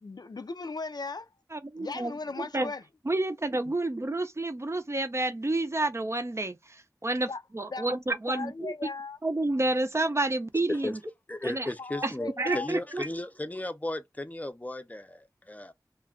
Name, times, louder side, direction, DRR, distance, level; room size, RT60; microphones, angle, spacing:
voice 1, 0.0-1.3 1.8-2.8 3.7-3.8 7.3-7.4 7.7-8.0 8.3-9.2 11.8-12.7, left 3 dB, 70° left, 0.4 m, -37 dB
voice 2, 1.5-2.1 2.4-2.7 3.1-8.7 9.2-11.0 11.4-11.7 12.0-13.1, right 2 dB, 40° right, 0.5 m, -30 dB
voice 3, 11.3-15.7, left 1 dB, 20° left, 0.5 m, -35 dB
2.4 x 2.1 x 3.6 m
wide cardioid pair, 45°, 7 cm